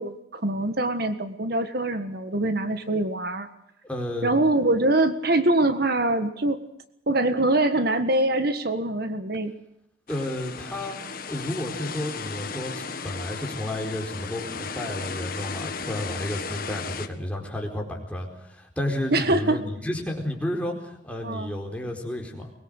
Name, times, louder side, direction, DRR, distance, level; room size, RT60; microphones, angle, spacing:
voice 1, 0.0-3.5 4.2-6.6 7.1-9.5 19.1-19.6 21.2-21.5, right 2 dB, 55° right, 9 dB, 1.5 m, -24 dB
voice 2, 3.8-4.3 10.1-11.0 11.3-12.7 13.0-22.4, left 1 dB, 5° left, 1 dB, 4.6 m, -31 dB
sound 1, 10.1-17.1, left 5 dB, 50° left, 1.7 m, -35 dB
23.5 x 21.5 x 6.6 m, 0.80 s
head